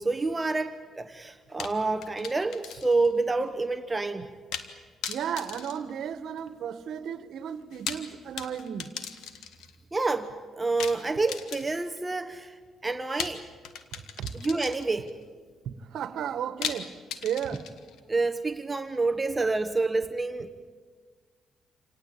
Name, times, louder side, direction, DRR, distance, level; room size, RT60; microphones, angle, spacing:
voice 1, 0.0-4.3 9.9-13.4 14.3-15.1 18.1-20.5, right 3 dB, 20° right, 1.1 m, -28 dB
sound 1, 1.6-3.1 3.4-3.5 4.5-4.8 5.0-6.6 7.6-9.8 10.8-12.0 13.2-15.1 16.6-18.0, left 8 dB, 85° left, 1.7 m, -38 dB
voice 2, 5.1-8.9 13.9-14.3 15.6-16.9 17.2-17.6, right 8 dB, 70° right, 1.6 m, -34 dB
27.5 x 18.5 x 8.7 m
cardioid pair, 90°, 0 cm